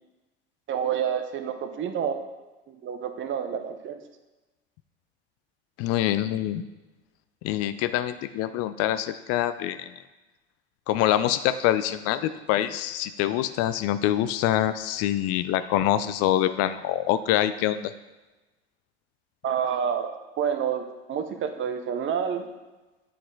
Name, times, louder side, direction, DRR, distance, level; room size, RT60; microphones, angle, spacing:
voice 1, 0.7-2.2 2.7-4.0 19.4-20.1 20.4-22.5, right 8 dB, 40° right, 7 dB, 0.8 m, -28 dB
voice 2, 5.8-6.6 7.4-9.9 10.9-17.9, left 12 dB, 50° left, 12 dB, 0.4 m, -25 dB
7.6 x 4.2 x 3.9 m, 1.1 s
hypercardioid pair, 80°, 31 cm